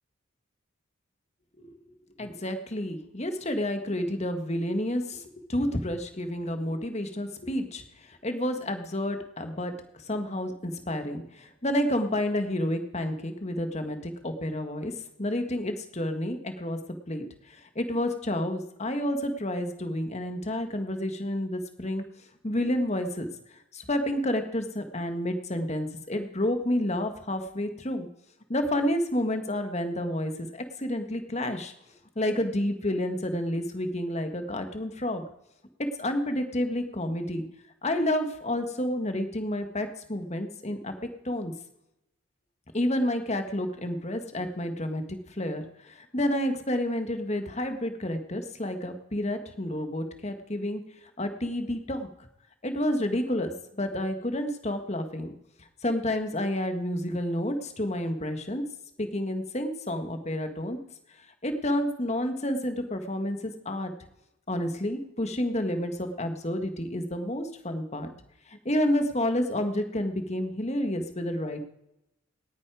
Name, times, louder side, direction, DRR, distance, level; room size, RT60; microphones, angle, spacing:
voice 1, 2.2-14.9 15.2-16.8 17.1-22.0 22.4-28.1 28.5-31.7 32.1-35.2 36.0-37.4 37.8-40.9 41.2-41.5 42.7-50.8 51.2-52.1 52.6-53.5 53.8-55.3 55.6-58.6 59.0-60.8 61.1-63.9 64.5-68.1 68.5-71.6, left 1 dB, 30° left, 7 dB, 1.7 m, -30 dB
18.5 x 9.8 x 4.9 m, 0.83 s
head